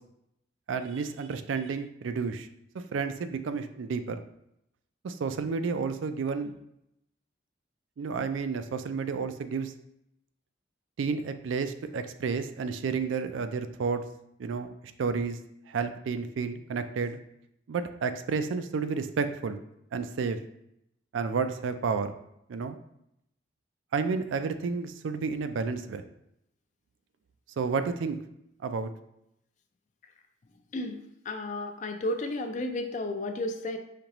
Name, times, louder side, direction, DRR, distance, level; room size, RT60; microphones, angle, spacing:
voice 1, 0.7-2.5 2.9-4.2 5.0-6.6 8.0-9.7 11.0-14.0 14.4-14.7 15.0-15.4 15.7-17.2 17.7-19.6 19.9-20.4 21.1-22.1 22.5-22.8 23.9-26.0 27.6-28.2 28.6-28.9, right 5 dB, 80° right, 9 dB, 0.4 m, -31 dB
voice 2, 30.7-33.8, left 1 dB, 40° left, 6 dB, 0.4 m, -33 dB
5.1 x 2.9 x 2.9 m, 0.78 s
head